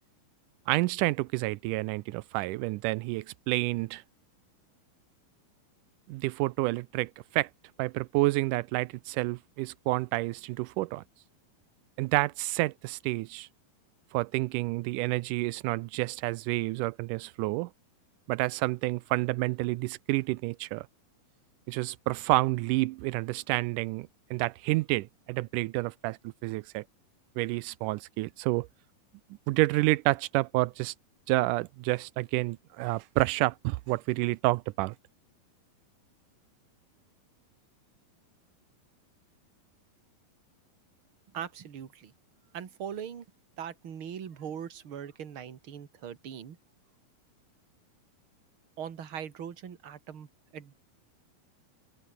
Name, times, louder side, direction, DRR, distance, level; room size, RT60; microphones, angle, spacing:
voice 1, 0.7-4.0 6.1-7.5 7.8-11.0 12.0-13.5 14.1-17.7 18.3-20.9 21.7-26.8 27.4-28.7 29.5-30.9 31.3-35.0, right 20 dB, 90° right, 1.8 m, -29 dB
voice 2, 41.3-42.1 42.5-43.3 43.6-46.6 48.8-50.3 50.5-50.8, right 8 dB, 40° right, 2.3 m, -40 dB
open air
omnidirectional pair, 4.3 m